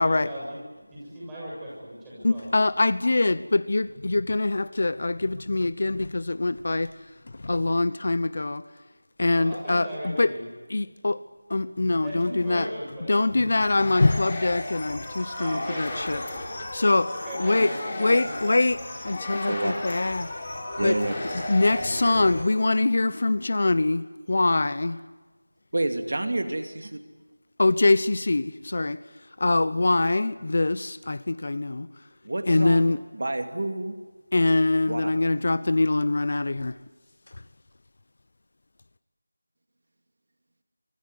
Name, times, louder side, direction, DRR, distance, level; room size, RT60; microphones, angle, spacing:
voice 1, 0.0-2.5 9.3-10.5 12.0-13.7 15.3-16.6 17.2-18.5 21.0-22.1, equal, 5° right, -8 dB, 7.2 m, -37 dB
voice 2, 2.2-6.9 7.4-8.6 9.2-10.3 10.7-11.2 11.5-12.7 13.1-16.2 16.7-17.1 17.4-17.7 18.0-18.8 19.0-20.3 20.8-21.0 21.5-25.0 27.6-29.0 29.4-31.9 32.5-33.0 34.3-36.7, left 2 dB, 45° left, 16 dB, 0.8 m, -23 dB
sound 1, 13.6-22.4, left 2 dB, 20° left, 5.0 m, -35 dB
voice 3, 19.3-20.0 20.8-21.1 25.7-26.9 32.2-32.8 33.2-34.0 34.9-35.1, right 2 dB, 55° right, 7 dB, 2.5 m, -28 dB
24.5 x 24.0 x 9.6 m, 1.3 s
figure-of-eight pair, 175°, 0 cm